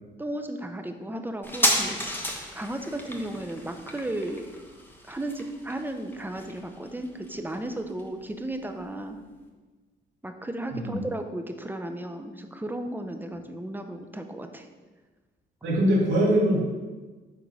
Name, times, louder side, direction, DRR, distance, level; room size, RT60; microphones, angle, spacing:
voice 1, 0.2-2.0 2.3-4.5 5.0-9.2 10.2-14.7, right 1 dB, 10° right, 6 dB, 0.8 m, -34 dB
metal machine switch off clack, 1.4-8.5 8.8-8.9, equal, 10° left, 1.3 m, -32 dB
voice 2, 10.7-11.0 15.6-16.6, equal, 75° right, -5 dB, 2.8 m, -22 dB
9.5 x 3.8 x 5.6 m, 1.3 s
cardioid pair, 90°, 20 cm